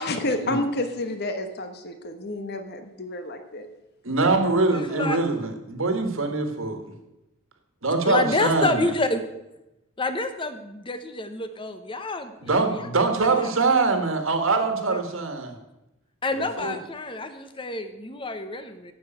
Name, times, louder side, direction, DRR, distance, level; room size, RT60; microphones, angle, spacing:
voice 1, 0.0-3.7, left 2 dB, 50° left, 7 dB, 1.2 m, -30 dB
voice 2, 4.0-6.8 7.8-8.9 12.4-15.5 16.4-16.8, right 3 dB, 65° right, 6 dB, 1.6 m, -23 dB
voice 3, 4.7-5.2 8.0-9.2 10.0-12.5 13.4-13.5 14.9-15.0 16.2-18.9, left 2 dB, 25° left, 10 dB, 0.9 m, -28 dB
10.5 x 7.2 x 7.9 m, 0.94 s
head